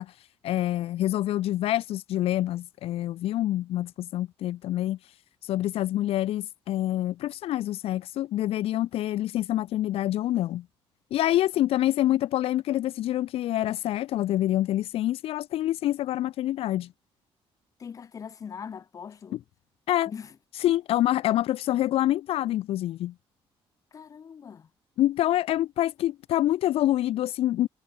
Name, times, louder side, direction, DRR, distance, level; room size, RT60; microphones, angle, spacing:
voice 1, 0.0-5.1 5.4-10.6 11.1-16.9 19.9-20.1 20.5-23.1 25.0-27.7, left 13 dB, 75° left, 1.0 m, -26 dB
voice 2, 17.8-19.4 20.1-20.3 23.9-24.7, left 7 dB, 35° left, 5.2 m, -41 dB
cardioid pair, 175°, 10 cm